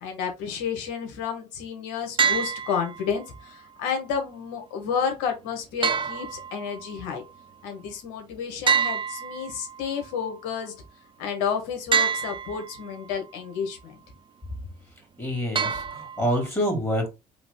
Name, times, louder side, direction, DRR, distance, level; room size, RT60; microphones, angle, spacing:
voice 1, 0.0-7.2 7.6-10.7 11.2-14.0, left 7 dB, 70° left, 1.4 m, -31 dB
sound 1, 2.2-3.2 5.8-6.9 8.7-9.9 11.9-12.9 15.5-16.5, right 6 dB, 25° right, 0.6 m, -26 dB
voice 2, 15.2-17.1, equal, 10° left, 2.6 m, -27 dB
3.9 x 2.9 x 3.7 m
hypercardioid pair, 60°, 19 cm